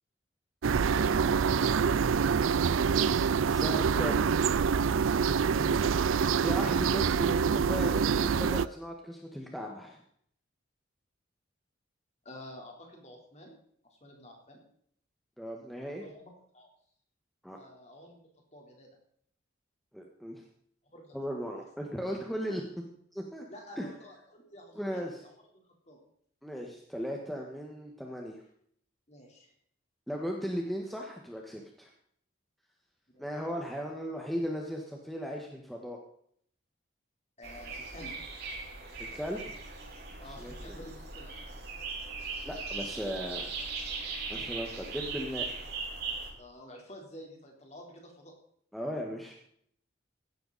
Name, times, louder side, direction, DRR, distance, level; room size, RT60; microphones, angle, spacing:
sound 1, 0.6-8.7, right 6 dB, 85° right, 0.4 m, -26 dB
voice 1, 0.9-2.1 5.5-5.8 12.2-13.6 13.9-14.6 16.0-16.7 17.5-18.9 20.8-21.2 21.6-21.7 23.5-26.0 29.1-29.5 33.1-33.3 37.4-38.1 40.2-41.4 46.4-48.3, equal, 35° left, 1 dB, 4.0 m, -49 dB
voice 2, 2.8-4.3 6.4-10.0 15.4-16.0 17.4-17.6 19.9-20.4 21.1-22.6 23.1-23.4 23.8-23.9 24.7-25.2 26.4-28.4 30.1-31.9 33.2-36.0 39.0-39.4 40.4-40.8 42.4-43.5 44.3-45.4 48.7-49.3, equal, ahead, 0 dB, 1.5 m, -37 dB
sound 2, 37.4-46.3, right 4 dB, 55° right, 4.8 m, -39 dB
16.0 x 12.5 x 4.2 m, 0.64 s
head